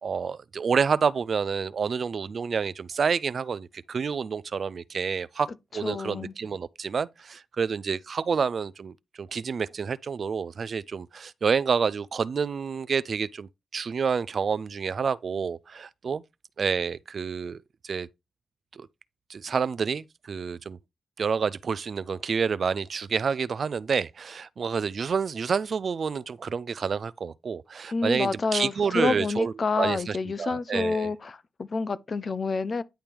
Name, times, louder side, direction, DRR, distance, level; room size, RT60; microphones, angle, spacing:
voice 1, 0.0-16.2 16.6-17.6 17.8-18.1 18.7-18.9 19.3-20.8 21.2-31.1, right 6 dB, 60° right, 0.4 m, -28 dB
voice 2, 5.8-6.3 27.9-32.8, left 4 dB, 45° left, 0.6 m, -28 dB
10.0 x 3.5 x 4.5 m
wide cardioid pair, 110°, 0 cm